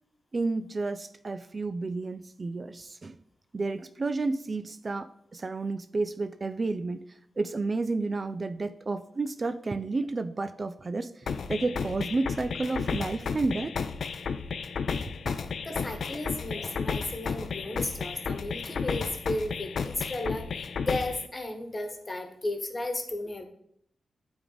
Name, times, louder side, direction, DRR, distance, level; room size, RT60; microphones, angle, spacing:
voice 1, 0.3-3.2 3.5-13.8 16.1-16.2, right 3 dB, 40° right, 12 dB, 0.3 m, -31 dB
sound 1, 11.3-21.3, left 5 dB, 70° left, 0.4 m, -33 dB
voice 2, 15.6-23.4, left 2 dB, 30° left, 6 dB, 1.2 m, -34 dB
8.9 x 3.5 x 4.0 m, 0.71 s
cardioid pair, 60°, 0 cm